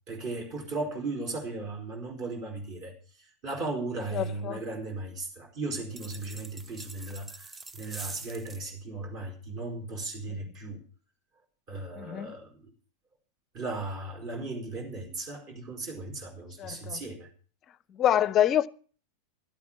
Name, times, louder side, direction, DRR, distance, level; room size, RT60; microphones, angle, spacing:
voice 1, 0.1-10.8 11.7-12.7 13.5-17.3, right 2 dB, 40° right, 4.8 m, -36 dB
voice 2, 4.1-4.6 12.0-12.3 16.6-17.0 17.9-18.7, left 11 dB, 30° left, 0.6 m, -26 dB
sound 1, 5.9-8.7, right 3 dB, 15° right, 0.7 m, -44 dB
12.5 x 8.6 x 7.4 m
figure-of-eight pair, 90°, 0 cm